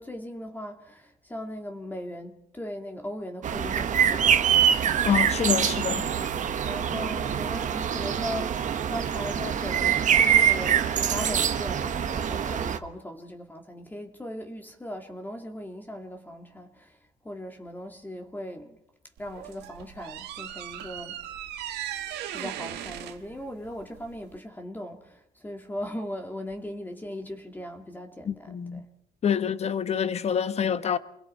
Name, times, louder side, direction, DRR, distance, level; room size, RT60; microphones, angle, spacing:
voice 1, 0.0-5.4 6.6-17.0 17.2-18.8 19.2-21.2 22.3-28.8, equal, 10° left, 2.0 m, -38 dB
sound 1, 3.4-12.8, right 8 dB, 45° right, 1.4 m, -24 dB
voice 2, 5.0-6.1 28.3-28.8 29.2-31.0, left 7 dB, 40° left, 1.2 m, -26 dB
sound 2, 19.2-24.4, right 11 dB, 85° right, 1.5 m, -38 dB
29.0 x 21.5 x 4.2 m
cardioid pair, 110°, 17 cm